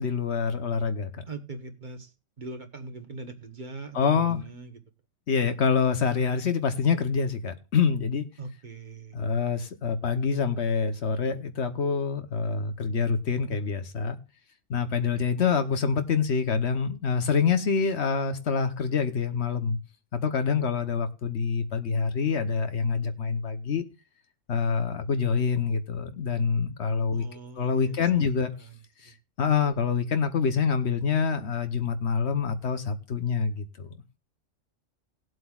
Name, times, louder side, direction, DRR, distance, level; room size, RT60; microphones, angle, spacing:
voice 1, 0.0-1.2 3.9-4.4 5.3-8.3 9.1-14.2 14.7-19.8 20.1-23.8 24.5-27.3 27.6-28.5 29.0-29.1 29.4-33.9, left 5 dB, 65° left, 1.2 m, -26 dB
voice 2, 1.3-4.8 8.4-9.2 27.1-28.8 29.0-29.1, right 3 dB, 40° right, 1.2 m, -42 dB
19.0 x 7.8 x 2.4 m
omnidirectional pair, 1.3 m